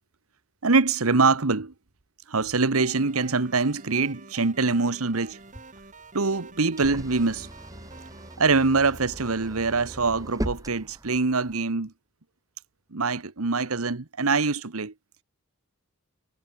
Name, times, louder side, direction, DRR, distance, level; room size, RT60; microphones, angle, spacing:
voice 1, 0.6-1.7 2.3-5.4 6.1-7.5 8.4-11.9 12.9-14.9, right 4 dB, 80° right, 1.3 m, -24 dB
sound 1, 2.7-8.4, right 3 dB, 35° right, 2.8 m, -48 dB
sound 2, 5.3-11.6, equal, 15° right, 5.8 m, -39 dB
head